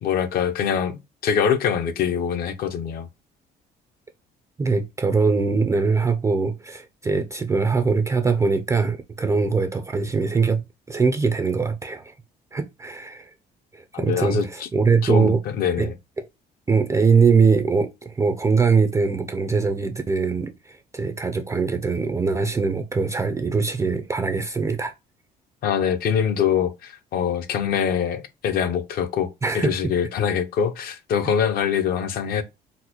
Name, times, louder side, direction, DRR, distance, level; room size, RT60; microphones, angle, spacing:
voice 1, 0.0-3.1 13.9-14.5 15.0-16.0 25.6-29.3 29.5-32.4, left 7 dB, 65° left, 0.5 m, -24 dB
voice 2, 4.6-10.6 10.9-12.1 12.5-13.3 13.7-15.4 15.8-15.9 16.2-16.3 16.7-24.9 29.4-29.9, right 5 dB, 20° right, 0.3 m, -22 dB
3.9 x 2.1 x 2.9 m
cardioid pair, 110°, 17 cm